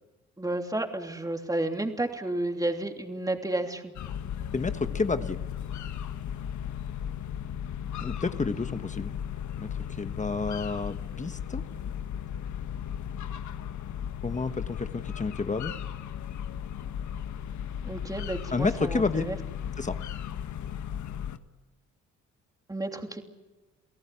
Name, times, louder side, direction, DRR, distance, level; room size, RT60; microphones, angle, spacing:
voice 1, 0.4-3.9 17.8-19.4 22.7-23.2, right 1 dB, 10° right, 4 dB, 3.1 m, -31 dB
sound 1, 4.0-21.4, left 9 dB, 70° left, 1.4 m, -36 dB
voice 2, 4.5-5.4 8.0-9.2 9.6-9.7 10.0-11.6 14.2-15.7 18.5-19.3 19.8-20.0, left 4 dB, 25° left, 10 dB, 1.2 m, -30 dB
29.0 x 17.5 x 8.5 m, 1.2 s
cardioid pair, 90°, 30 cm